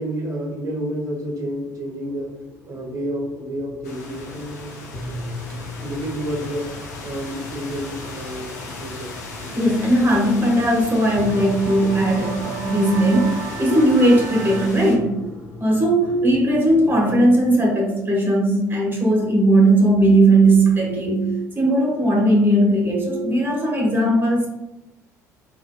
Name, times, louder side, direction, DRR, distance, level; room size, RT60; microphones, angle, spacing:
voice 1, 0.0-2.4 2.7-4.8 5.8-6.8 7.0-9.2 16.0-16.2, equal, 40° right, -1 dB, 1.1 m, -30 dB
sound 1, 1.1-17.6, left 1 dB, 55° left, 1.5 m, -38 dB
sound 2, 3.8-15.0, left 3 dB, 75° left, 0.5 m, -37 dB
voice 2, 9.5-15.3 15.6-24.5, right 1 dB, 25° right, -2 dB, 1.4 m, -18 dB
sound 3, 10.6-14.7, right 7 dB, 60° right, 0.4 m, -35 dB
4.0 x 2.8 x 2.2 m, 0.92 s
figure-of-eight pair, 55°, 9 cm